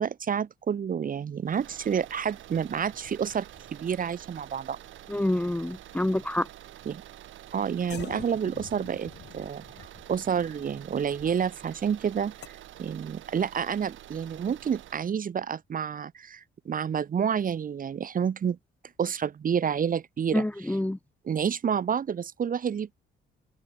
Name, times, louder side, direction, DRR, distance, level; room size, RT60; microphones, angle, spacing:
voice 1, 0.0-3.5 3.7-4.8 6.9-7.0 7.5-12.5 12.8-18.6 19.0-20.4 21.2-23.0, right 7 dB, 45° right, 1.0 m, -29 dB
sound 1, 1.4-15.1, right 13 dB, 80° right, 4.9 m, -48 dB
sound 2, 2.6-5.5 5.7-6.3 7.0-7.1 7.9-12.5, left 9 dB, 60° left, 2.3 m, -48 dB
voice 2, 5.1-6.5 20.3-21.0, left 1 dB, 5° left, 1.0 m, -27 dB
open air
cardioid pair, 90°, 20 cm